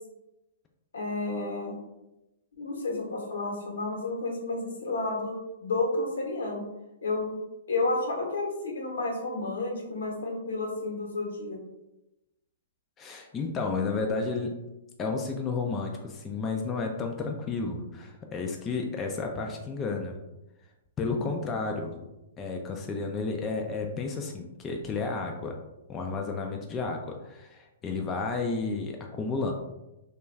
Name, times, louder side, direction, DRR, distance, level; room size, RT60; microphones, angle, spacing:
voice 1, 0.9-1.7 2.6-6.6 7.0-7.4 7.7-11.6 21.1-21.5, left 2 dB, 85° left, -1 dB, 0.9 m, -31 dB
voice 2, 13.0-14.6 15.0-20.2 21.0-25.6 25.9-29.5, left 4 dB, 20° left, 2 dB, 0.3 m, -32 dB
2.4 x 2.3 x 3.1 m, 0.96 s
hypercardioid pair, 135°, 0 cm